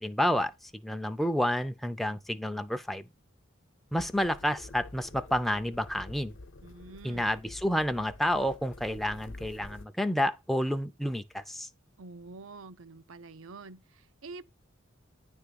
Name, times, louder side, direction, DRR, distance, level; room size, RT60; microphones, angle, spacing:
voice 1, 0.0-3.1 3.9-6.3 7.0-11.7, equal, ahead, 0.5 m, -30 dB
sound 1, 4.0-9.8, left 2 dB, 65° left, 0.8 m, -48 dB
voice 2, 6.6-7.3 12.0-14.5, right 3 dB, 80° right, 0.6 m, -47 dB
9.9 x 3.6 x 6.7 m
head